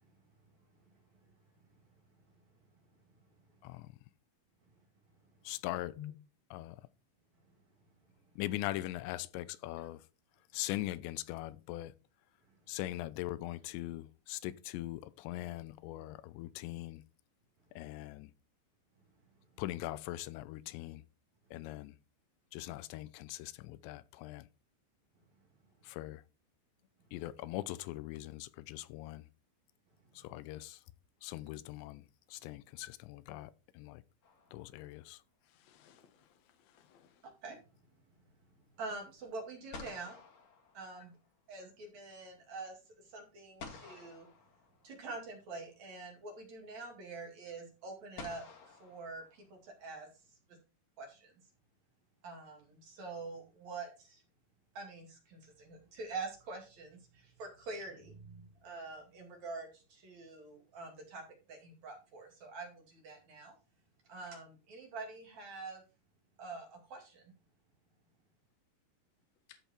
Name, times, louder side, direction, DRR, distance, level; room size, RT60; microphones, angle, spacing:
voice 1, 5.4-6.0 6.5-6.9 8.4-10.0 10.5-11.9 12.7-17.0 17.8-18.3 19.6-21.0 21.5-22.0 22.5-24.5 25.8-26.2 27.1-29.3 30.2-30.8 31.2-34.0 34.5-35.2, left 16 dB, 80° left, 2.7 m, -41 dB
sound 1, 34.2-35.1 39.2-39.3 39.7-41.4 43.6-45.2 46.5-46.6 48.2-49.8, left 4 dB, 45° left, 2.3 m, -52 dB
voice 2, 35.4-37.2 69.5-69.6, left 13 dB, 65° left, 1.8 m, -53 dB
voice 3, 38.8-40.2 40.7-41.1 41.5-42.8 43.1-44.3 44.8-50.1 51.0-51.3 52.2-54.2 54.7-61.2 61.5-63.5 64.1-65.8 66.4-67.3, right 3 dB, 45° right, 3.0 m, -46 dB
13.5 x 4.5 x 4.4 m
omnidirectional pair, 5.3 m